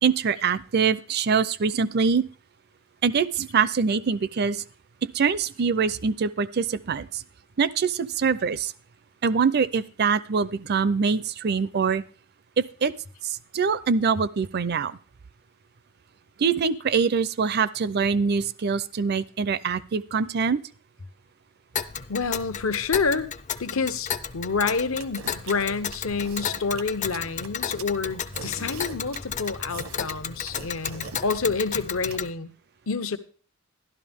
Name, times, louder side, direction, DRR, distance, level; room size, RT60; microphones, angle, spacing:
voice 1, 0.0-2.2 3.0-4.6 5.1-7.2 7.6-8.7 9.2-12.0 12.6-12.9 13.2-15.0 16.4-20.6, right 5 dB, 50° right, 18 dB, 0.5 m, -24 dB
Tick, 21.7-32.3, left 7 dB, 35° left, 0.5 m, -33 dB
voice 2, 22.1-23.3 23.6-32.5 32.9-33.2, left 4 dB, 65° left, 11 dB, 0.9 m, -28 dB
sound 1, 25.0-32.2, right 5 dB, 80° right, 1.1 m, -41 dB
12.0 x 12.0 x 3.6 m, 0.39 s
head